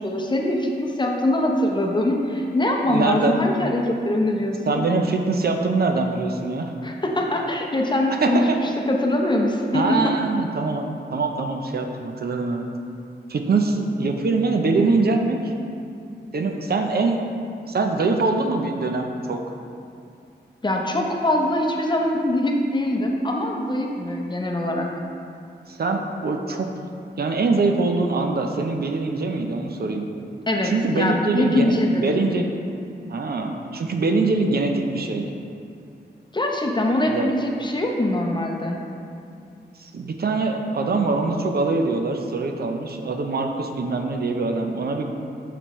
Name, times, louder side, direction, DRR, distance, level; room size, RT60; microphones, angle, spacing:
voice 1, 0.0-4.8 6.8-10.1 20.6-24.9 30.5-32.1 36.3-38.8, left 1 dB, 25° left, 0 dB, 0.8 m, -23 dB
voice 2, 2.9-3.3 4.7-6.7 8.1-8.6 9.7-10.9 11.1-12.7 13.3-15.5 16.3-17.2 17.7-19.4 25.7-26.7 27.2-30.1 30.6-31.7 32.0-32.5 33.1-35.3 37.1-37.3 39.8-45.1, right 3 dB, 60° right, 4 dB, 0.6 m, -23 dB
7.9 x 6.0 x 3.1 m, 2.5 s
wide cardioid pair, 100°, 18 cm